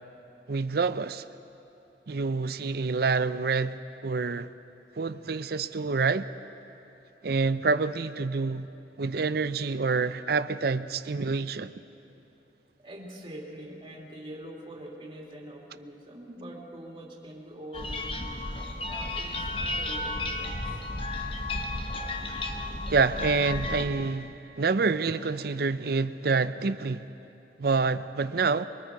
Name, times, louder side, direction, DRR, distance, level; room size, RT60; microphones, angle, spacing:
voice 1, 0.5-1.2 2.1-4.5 5.0-6.3 7.2-8.7 9.0-11.7 22.9-27.1 27.6-28.6, right 4 dB, 60° right, 0.6 m, -27 dB
voice 2, 12.8-18.4 18.9-20.8, right 1 dB, 30° right, 3.1 m, -44 dB
sound 1, 17.7-23.9, left 2 dB, 30° left, 1.2 m, -33 dB
24.0 x 23.5 x 4.7 m
head